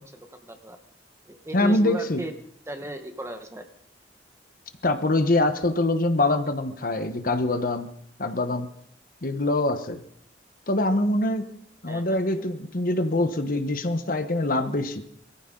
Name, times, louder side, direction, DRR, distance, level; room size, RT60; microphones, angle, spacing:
voice 1, 0.1-0.8 1.3-2.3 2.7-3.7 11.9-12.5, right 1 dB, 15° right, 6 dB, 1.2 m, -36 dB
voice 2, 1.5-2.2 4.8-7.9 8.2-8.7 9.2-10.0 10.7-11.5 11.8-15.0, left 2 dB, 55° left, 8 dB, 1.1 m, -24 dB
21.5 x 14.5 x 3.9 m, 0.67 s
head